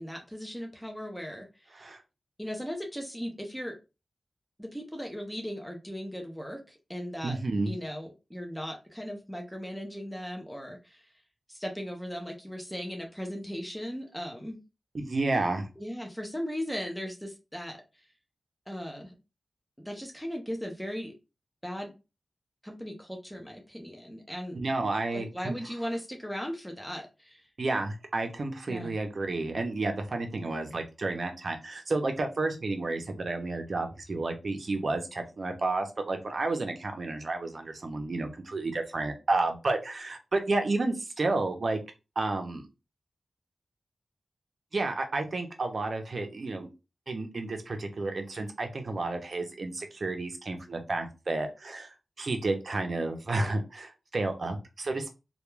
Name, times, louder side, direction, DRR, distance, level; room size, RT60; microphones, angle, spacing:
voice 1, 0.0-1.9 2.4-3.8 4.6-7.4 7.7-11.0 11.5-14.6 15.8-17.8 18.7-19.1 19.9-21.1 21.6-21.9 22.6-24.6 25.1-27.5 28.7-29.0, equal, 5° left, 2 dB, 0.5 m, -37 dB
voice 2, 7.2-7.7 14.9-15.7 24.5-25.6 27.6-41.8 42.2-42.6 44.7-46.7 47.1-55.1, right 2 dB, 50° right, 5 dB, 0.5 m, -31 dB
2.2 x 2.2 x 3.1 m, 0.28 s
wide cardioid pair, 135°, 0 cm